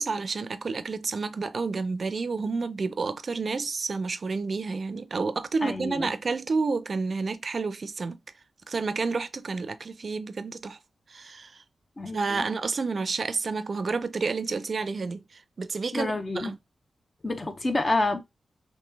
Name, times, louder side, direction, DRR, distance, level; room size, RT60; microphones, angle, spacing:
voice 1, 0.0-8.2 8.7-10.8 11.1-11.5 12.1-16.6, right 4 dB, 55° right, 0.4 m, -30 dB
voice 2, 5.6-6.1 12.0-12.5 15.9-16.5 17.2-18.2, left 2 dB, 35° left, 0.7 m, -28 dB
3.1 x 2.8 x 3.4 m
cardioid pair, 60°, 0 cm